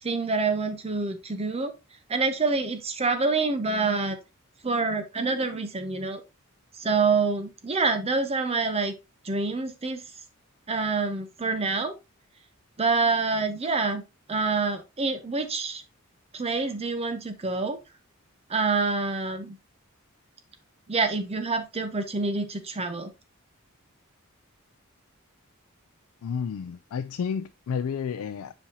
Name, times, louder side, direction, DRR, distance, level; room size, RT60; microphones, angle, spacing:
voice 1, 0.0-1.7 2.1-4.2 4.6-6.2 6.8-9.0 9.2-10.0 10.7-11.9 12.8-14.0 14.3-15.8 16.3-17.8 18.5-19.6 20.9-23.1, right 4 dB, 30° right, 0.6 m, -26 dB
voice 2, 26.2-28.5, left 6 dB, 75° left, 0.3 m, -31 dB
7.3 x 5.3 x 2.7 m
head